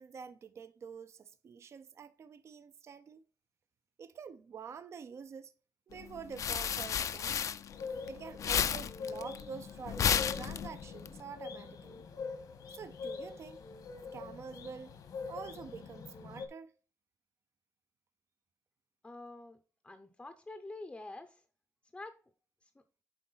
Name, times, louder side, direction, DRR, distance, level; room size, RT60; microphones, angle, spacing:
voice 1, 0.0-3.2 4.0-5.5 5.9-7.5 8.0-12.0 12.7-13.6 14.1-15.0 15.3-16.7, right 6 dB, 50° right, 0.5 m, -47 dB
sound 1, 6.0-8.1 8.4-11.1, left 8 dB, 60° left, 0.4 m, -32 dB
sound 2, 7.7-16.5, left 4 dB, 80° left, 1.3 m, -44 dB
voice 2, 19.0-19.6 19.8-21.4 21.9-22.2 22.6-22.7, left 2 dB, 15° left, 0.6 m, -47 dB
7.7 x 4.7 x 3.9 m
wide cardioid pair, 145°, 6 cm